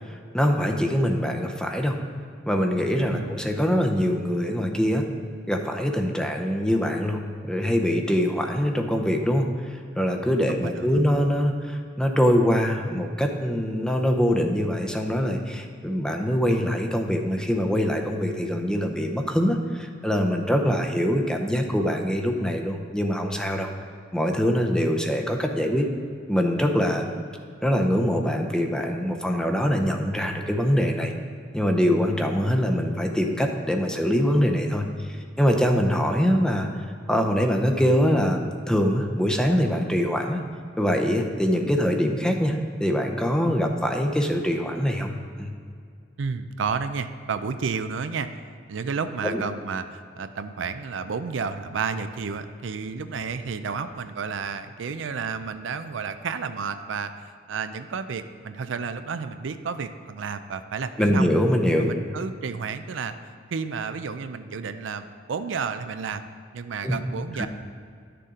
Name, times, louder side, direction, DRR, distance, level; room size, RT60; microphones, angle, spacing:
voice 1, 0.3-2.0 2.5-5.0 5.5-9.5 10.0-23.7 24.1-25.9 26.3-27.1 27.6-31.1 31.5-34.9 35.4-36.7 37.1-40.4 40.8-45.1 45.4-45.5 49.2-49.4 61.0-61.9 66.8-67.0 67.4-67.5, equal, 5° left, 3 dB, 0.6 m, -23 dB
voice 2, 10.5-11.0 20.7-20.8 46.2-48.3 48.7-61.3 61.8-63.2 63.5-66.2 66.5-67.5, right 5 dB, 80° right, 10 dB, 0.5 m, -31 dB
11.5 x 6.8 x 3.7 m, 2.2 s
head